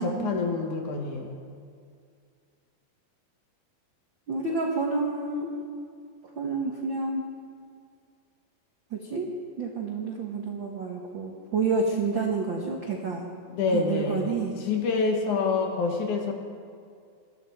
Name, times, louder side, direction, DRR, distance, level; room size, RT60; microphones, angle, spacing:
voice 1, 0.0-1.4 13.5-16.3, left 4 dB, 60° left, 2 dB, 2.6 m, -27 dB
voice 2, 4.3-5.5 6.3-7.2 8.9-9.3 9.6-13.2 13.7-14.5, right 4 dB, 70° right, -1 dB, 1.1 m, -29 dB
21.5 x 13.5 x 4.6 m, 2.2 s
omnidirectional pair, 4.3 m